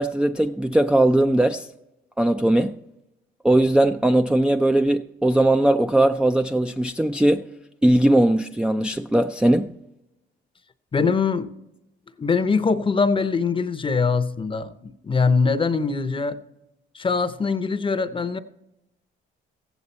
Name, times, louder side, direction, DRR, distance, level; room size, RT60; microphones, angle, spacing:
voice 1, 0.0-1.7 2.2-2.8 3.4-7.5 7.8-9.7, right 1 dB, 5° right, 0.4 m, -19 dB
voice 2, 10.9-11.5 12.2-16.4 16.9-18.4, left 4 dB, 25° left, 0.7 m, -22 dB
15.0 x 8.2 x 4.2 m
cardioid pair, 90°, 20 cm